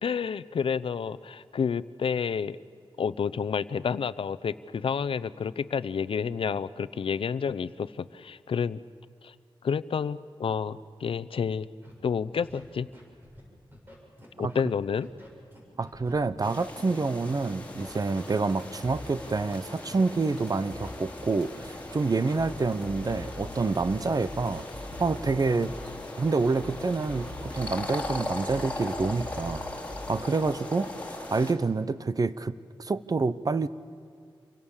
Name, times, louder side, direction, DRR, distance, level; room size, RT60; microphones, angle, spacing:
voice 1, 0.0-2.6 3.0-8.8 9.2-9.3 9.6-11.7 12.0-12.9 14.4-15.1, left 6 dB, 75° left, 14 dB, 0.7 m, -30 dB
Scratching (performance technique), 11.8-11.9 12.4-12.6 12.9-13.4 13.7-14.7 15.0-17.3 17.7-22.7 23.0-23.2 23.7-24.6 25.1-25.2 25.6-25.9 26.3-28.0 28.3-28.5 29.1-29.2, equal, 20° right, 7.5 m, -49 dB
voice 2, 15.8-24.7 25.0-25.8 26.2-29.6 30.1-30.9 31.3-32.5 32.8-33.7, right 3 dB, 40° right, 15 dB, 0.9 m, -27 dB
sound 1, 16.4-31.5, left 2 dB, 15° left, 3.9 m, -39 dB
sound 2, 18.3-21.8 22.3-26.0 26.6-30.3, left 1 dB, 5° right, 6.2 m, -43 dB
28.5 x 24.0 x 7.3 m, 2.3 s
wide cardioid pair, 90°, 9 cm